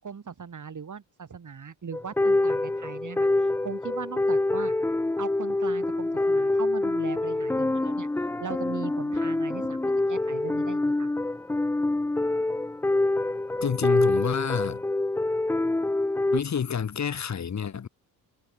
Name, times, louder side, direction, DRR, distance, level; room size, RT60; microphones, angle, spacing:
voice 1, 0.0-3.3 3.6-4.7 5.2-8.1 8.4-9.8 10.1-11.1, right 6 dB, 45° right, 6.1 m, -39 dB
sound 1, 1.9-16.4, left 2 dB, 5° left, 0.3 m, -26 dB
voice 2, 13.6-14.8 16.3-17.9, left 7 dB, 45° left, 1.5 m, -28 dB
cardioid pair, 75°, 40 cm